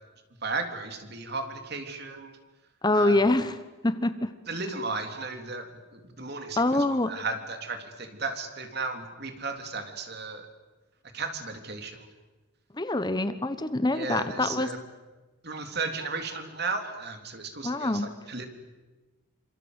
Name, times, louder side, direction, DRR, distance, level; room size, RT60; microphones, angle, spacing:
voice 1, 0.4-2.3 2.9-3.2 4.5-5.7 5.9-6.6 7.1-10.5 11.1-12.0 13.9-14.8 15.4-18.5, right 3 dB, 50° right, 6 dB, 3.5 m, -34 dB
voice 2, 2.8-3.6 3.8-4.3 6.6-7.1 12.7-14.7 17.6-18.1, left 2 dB, 20° left, 11 dB, 1.0 m, -25 dB
27.0 x 26.5 x 8.2 m, 1.2 s
head